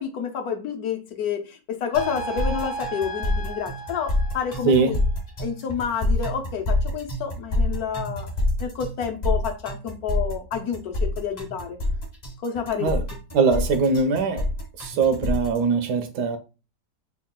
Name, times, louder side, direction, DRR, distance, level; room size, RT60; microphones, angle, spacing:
voice 1, 0.0-5.0 5.4-8.3 8.6-11.8 12.4-12.9, left 7 dB, 70° left, 1.1 m, -29 dB
sound 1, 1.9-15.6, left 1 dB, 40° left, 0.6 m, -27 dB
sound 2, 2.0-5.1, right 2 dB, 85° left, 1.3 m, -35 dB
voice 2, 13.3-14.5 14.8-16.4, right 4 dB, 75° right, 1.2 m, -21 dB
3.5 x 2.3 x 3.7 m
omnidirectional pair, 1.8 m